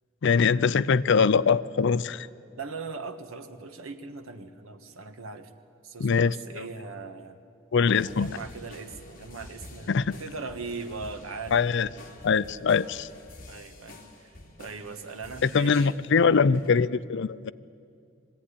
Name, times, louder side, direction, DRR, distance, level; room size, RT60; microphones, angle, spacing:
voice 1, 0.2-2.3 6.0-6.6 7.7-8.4 9.9-10.0 11.5-11.9 12.2-13.1 15.4-17.5, left 5 dB, 60° left, 17 dB, 0.5 m, -23 dB
voice 2, 2.6-5.5 5.8-7.4 8.0-11.7 13.5-15.9, right 4 dB, 90° right, 7 dB, 1.4 m, -40 dB
sound 1, 7.9-16.1 16.5-16.7, left 1 dB, 45° left, 2.8 m, -48 dB
21.0 x 16.0 x 9.9 m, 2.5 s
head